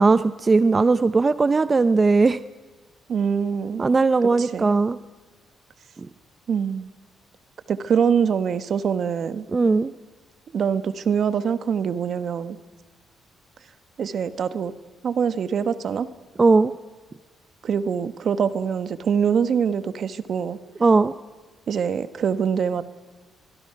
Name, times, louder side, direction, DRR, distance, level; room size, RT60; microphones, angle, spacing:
voice 1, 0.0-2.4 3.8-5.0 9.5-9.9 16.4-16.7 20.8-21.1, right 4 dB, 30° right, 13 dB, 0.6 m, -18 dB
voice 2, 3.1-3.9 4.4-4.7 6.5-6.9 7.7-9.4 10.5-12.6 14.0-14.7 15.0-16.1 17.6-20.6 21.7-22.8, right 7 dB, 55° right, 12 dB, 1.1 m, -24 dB
25.0 x 21.5 x 5.8 m, 1.3 s
cardioid pair, 90°, 0 cm